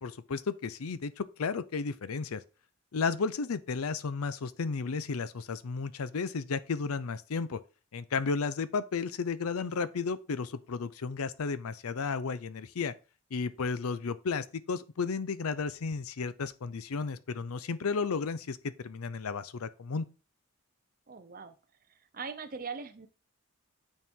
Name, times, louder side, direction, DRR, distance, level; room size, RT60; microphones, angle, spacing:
voice 1, 0.0-2.4 2.9-7.6 7.9-12.9 13.3-18.6 18.8-20.1, left 5 dB, 80° left, 0.5 m, -33 dB
voice 2, 21.1-21.5 21.9-23.1, right 5 dB, 40° right, 0.7 m, -41 dB
8.4 x 4.5 x 3.6 m
head